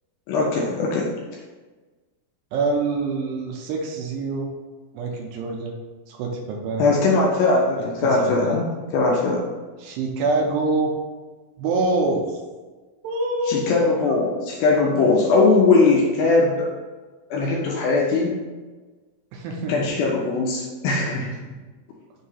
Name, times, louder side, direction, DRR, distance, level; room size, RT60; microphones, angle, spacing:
voice 1, 0.3-1.1 6.8-8.7 8.9-9.4 13.5-16.7 17.3-18.4 19.7-21.4, left 3 dB, 85° left, -2 dB, 2.1 m, -20 dB
voice 2, 2.5-4.5 4.9-5.8 6.1-6.8 8.0-8.6 9.8-10.9 11.6-12.4 13.0-14.3 19.3-20.0, right 3 dB, 80° right, 0 dB, 2.7 m, -25 dB
6.6 x 2.7 x 5.5 m, 1.3 s
omnidirectional pair, 4.9 m